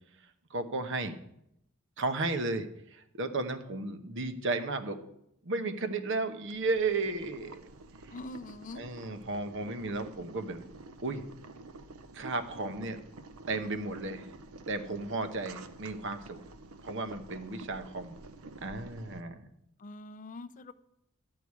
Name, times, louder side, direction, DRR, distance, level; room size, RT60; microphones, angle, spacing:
voice 1, 0.5-1.2 2.0-5.0 5.4-7.6 8.8-10.6 11.0-11.2 12.1-13.0 13.5-14.3 14.7-16.4 16.8-18.2 18.6-19.4, right 3 dB, 60° right, 8 dB, 0.9 m, -34 dB
Boiling, 6.4-19.2, right 2 dB, 85° right, 0.7 m, -49 dB
voice 2, 8.1-8.8 19.8-20.7, left 2 dB, 35° left, 11 dB, 0.5 m, -43 dB
12.0 x 4.8 x 8.4 m, 0.78 s
head